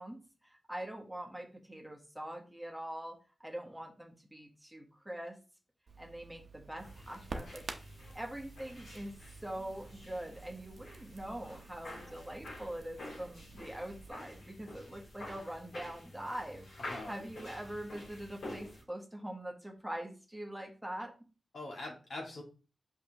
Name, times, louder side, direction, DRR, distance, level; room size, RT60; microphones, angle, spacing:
voice 1, 0.0-5.4 6.0-7.6 8.1-9.1 9.4-21.1, right 1 dB, 5° right, 1 dB, 1.3 m, -43 dB
Crackle, 5.9-14.1, right 3 dB, 55° right, 0.8 m, -50 dB
sound 1, 6.8-18.8, left 1 dB, 85° left, 3.3 m, -49 dB
voice 2, 16.8-17.3 21.5-22.4, left 2 dB, 70° left, -1 dB, 2.2 m, -43 dB
5.8 x 5.5 x 3.0 m, 0.34 s
wide cardioid pair, 105°, 0 cm